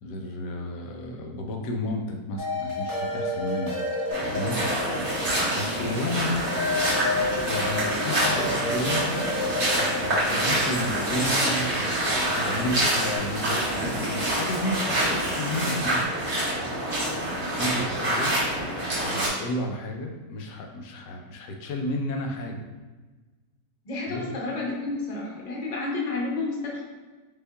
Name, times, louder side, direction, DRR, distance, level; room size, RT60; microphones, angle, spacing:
voice 1, 0.0-3.8 4.2-4.6 5.1-6.4 7.4-9.1 9.7-16.1 17.1-18.3 19.0-22.6 24.1-24.3, left 1 dB, 85° left, 2 dB, 1.3 m, -32 dB
sound 1, 2.4-13.2, left 2 dB, 15° right, 1.4 m, -31 dB
sound 2, 4.1-19.3, right 1 dB, 70° right, 2.1 m, -26 dB
sound 3, 5.1-16.0, right 1 dB, 45° right, 1.5 m, -41 dB
voice 2, 23.8-26.8, left 3 dB, 30° left, -3 dB, 0.9 m, -30 dB
5.3 x 4.2 x 2.3 m, 1.2 s
omnidirectional pair, 1.8 m